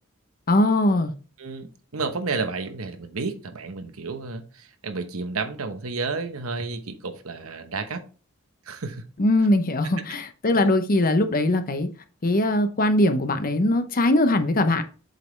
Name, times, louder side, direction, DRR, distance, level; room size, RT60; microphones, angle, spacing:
voice 1, 0.5-1.1 9.2-11.9 12.2-14.8, left 1 dB, 40° left, 0.8 m, -21 dB
voice 2, 1.4-8.1 8.7-9.0 10.5-10.7, right 4 dB, 75° right, 1.0 m, -31 dB
7.7 x 5.4 x 3.2 m
head